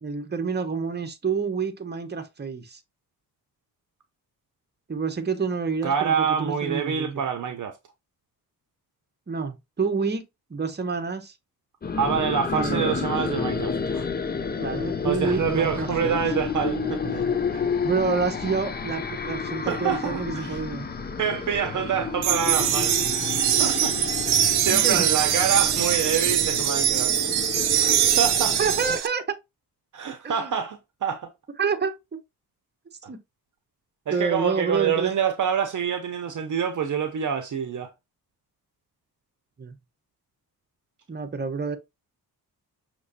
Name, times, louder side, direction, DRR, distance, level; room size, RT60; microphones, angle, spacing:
voice 1, 0.0-2.8 4.9-7.2 9.3-10.2 10.5-11.3 12.5-12.9 14.6-16.2 17.8-20.9 24.5-25.1 28.6-29.4 30.2-30.5 31.6-32.0 33.1-33.2 34.1-35.1 39.6-39.8 41.1-41.8, right 5 dB, 25° right, 1.0 m, -28 dB
voice 2, 5.8-7.8 12.0-14.1 15.0-17.6 19.7-20.6 21.2-24.0 24.2-27.1 27.7-28.6 29.9-31.3 33.0-33.1 34.1-37.9, right 7 dB, 50° right, 0.7 m, -27 dB
sound 1, 11.8-29.0, left 5 dB, 25° left, 0.6 m, -30 dB
sound 2, 22.2-29.1, right 11 dB, 85° right, 0.6 m, -22 dB
6.2 x 3.0 x 2.7 m
cardioid pair, 80°, 38 cm